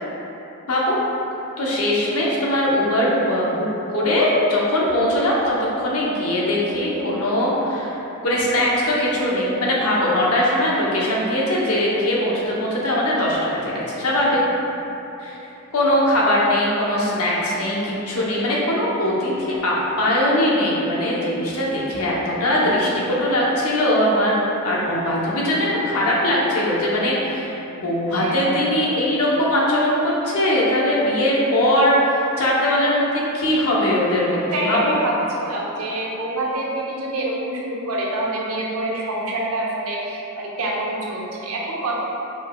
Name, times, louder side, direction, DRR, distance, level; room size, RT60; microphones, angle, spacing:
voice 1, 1.6-8.0 8.2-14.4 15.2-15.4 15.7-34.9, left 1 dB, 75° left, -5 dB, 0.9 m, -21 dB
voice 2, 34.5-42.0, right 2 dB, 80° right, -3 dB, 0.7 m, -26 dB
4.8 x 4.0 x 2.3 m, 3.0 s
head